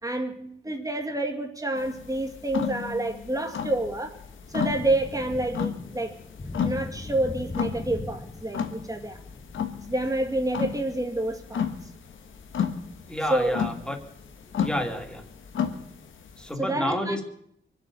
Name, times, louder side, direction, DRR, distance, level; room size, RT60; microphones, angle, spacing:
voice 1, 0.0-4.2 4.5-6.2 6.6-9.2 9.9-11.7 13.3-13.6 16.6-17.2, right 1 dB, 15° right, 4 dB, 2.4 m, -28 dB
sound 1, 1.8-16.5, left 7 dB, 90° left, 1.4 m, -33 dB
Thunder / Rain, 3.8-16.1, left 2 dB, 30° left, 1.5 m, -43 dB
voice 2, 13.1-14.0 14.6-15.2 16.4-17.2, equal, 5° left, 4 dB, 2.5 m, -29 dB
24.0 x 8.1 x 6.8 m, 0.69 s
cardioid pair, 85°, 20 cm